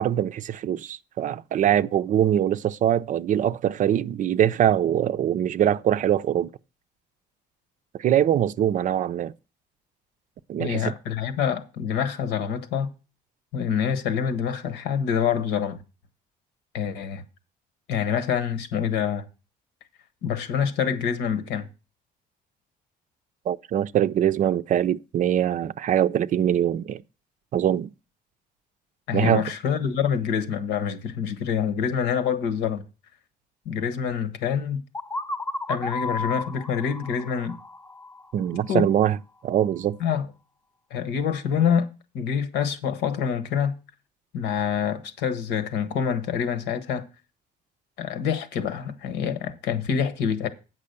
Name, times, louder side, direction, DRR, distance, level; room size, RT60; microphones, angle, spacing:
voice 1, 0.0-6.5 7.9-9.3 10.5-10.9 23.5-27.0 27.5-27.9 29.1-29.4 38.3-39.2 39.4-40.0, right 10 dB, 50° right, 0.5 m, -23 dB
voice 2, 10.6-12.9 13.5-15.8 16.7-17.2 17.9-19.3 20.2-21.7 29.1-32.8 33.6-34.8 35.7-37.6 38.7-38.9 40.0-40.3 40.9-41.9 42.1-43.8 44.3-47.1 48.0-50.5, left 7 dB, 85° left, 1.3 m, -26 dB
sound 1, 34.9-38.7, left 2 dB, 15° left, 0.7 m, -33 dB
8.5 x 6.1 x 6.7 m
cardioid pair, 110°, 17 cm